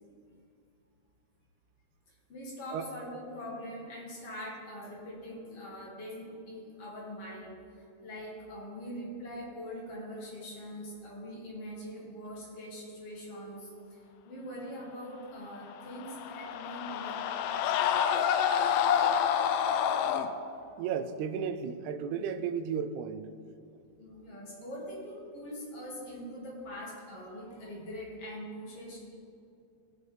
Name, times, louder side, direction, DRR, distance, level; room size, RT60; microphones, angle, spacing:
voice 1, 2.3-7.6 8.0-17.7 24.0-29.1, equal, 55° left, -4 dB, 2.9 m, -43 dB
sound 1, 15.8-20.3, left 8 dB, 85° left, 1.4 m, -28 dB
voice 2, 20.8-23.3, right 7 dB, 85° right, 9 dB, 2.0 m, -34 dB
19.5 x 6.4 x 3.3 m, 2.5 s
omnidirectional pair, 3.3 m